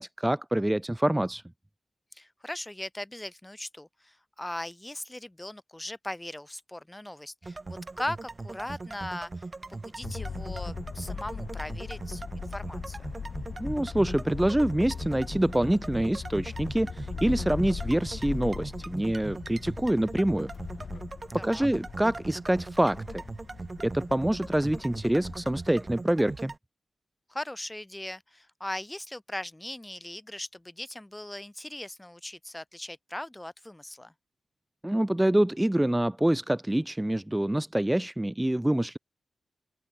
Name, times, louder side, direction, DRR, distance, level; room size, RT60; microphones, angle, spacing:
voice 1, 0.0-1.4 13.6-20.5 21.3-23.2 23.8-26.5 34.8-39.0, right 1 dB, 10° right, 0.6 m, -26 dB
voice 2, 2.1-13.1 21.3-21.7 27.3-34.1, left 1 dB, 15° left, 3.4 m, -39 dB
sound 1, 7.4-26.6, right 3 dB, 35° right, 2.3 m, -40 dB
sound 2, 10.0-25.9, left 5 dB, 65° left, 2.7 m, -39 dB
open air
cardioid pair, 60°, 0 cm